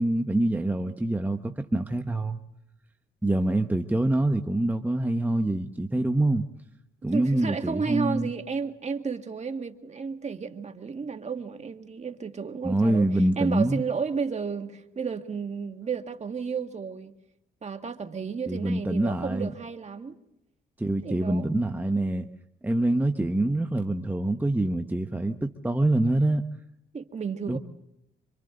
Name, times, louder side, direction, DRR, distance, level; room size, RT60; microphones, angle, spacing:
voice 1, 0.0-2.4 3.2-6.4 7.0-8.3 12.6-13.8 18.5-19.5 20.8-22.3 22.6-26.4 27.5-27.6, right 1 dB, 10° right, 1.1 m, -25 dB
voice 2, 7.1-13.1 13.4-17.1 17.6-20.2 21.0-21.5 26.9-27.6, right 5 dB, 35° right, 1.9 m, -32 dB
27.0 x 25.5 x 3.9 m
cardioid pair, 90°, 20 cm